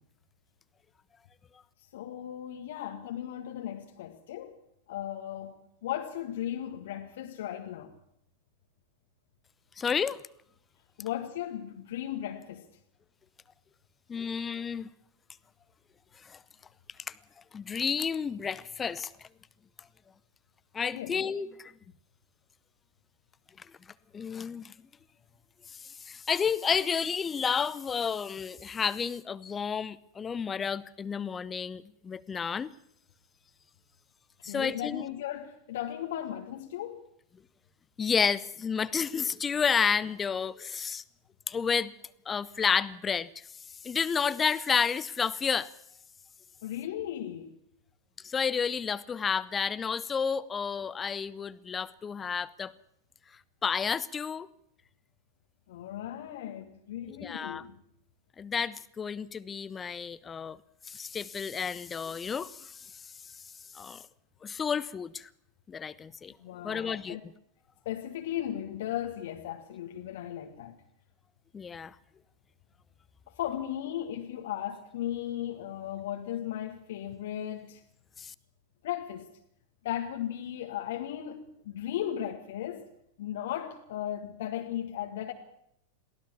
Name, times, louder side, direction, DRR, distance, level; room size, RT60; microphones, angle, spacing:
voice 1, 1.9-4.6 4.9-5.6 5.8-7.9 11.0-12.7 20.9-21.2 34.5-37.0 46.6-47.6 55.7-57.8 66.4-67.2 67.9-70.8 73.3-77.8 78.8-79.3 79.8-82.9 83.2-85.3, left 11 dB, 55° left, 1.6 m, -36 dB
voice 2, 9.8-10.2 14.1-14.9 16.2-16.4 17.5-19.3 20.7-21.7 23.6-23.7 24.1-24.7 25.7-32.7 34.4-35.1 38.0-41.0 41.5-41.9 42.3-43.3 43.8-45.7 48.2-52.7 53.6-54.5 57.1-57.6 58.4-60.6 60.9-63.3 63.7-64.0 64.4-65.3 65.7-66.3 66.6-67.2 71.5-72.0 78.2-78.3, left 6 dB, 20° left, 0.7 m, -31 dB
22.5 x 16.0 x 7.2 m
figure-of-eight pair, 90°, 0 cm